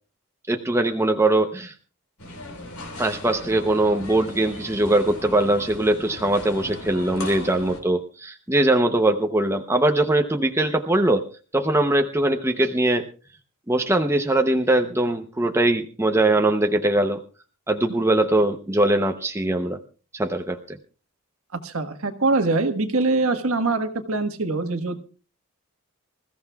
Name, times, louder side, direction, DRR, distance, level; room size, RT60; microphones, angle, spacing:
voice 1, 0.5-1.7 3.0-13.1 13.7-17.2 17.7-19.8 20.1-20.8, right 1 dB, 10° right, 5 dB, 0.7 m, -21 dB
sound 1, 2.2-7.8, left 1 dB, 80° left, 4.0 m, -38 dB
voice 2, 21.6-25.0, right 3 dB, 75° right, 7 dB, 1.5 m, -23 dB
26.0 x 15.0 x 2.3 m, 0.36 s
head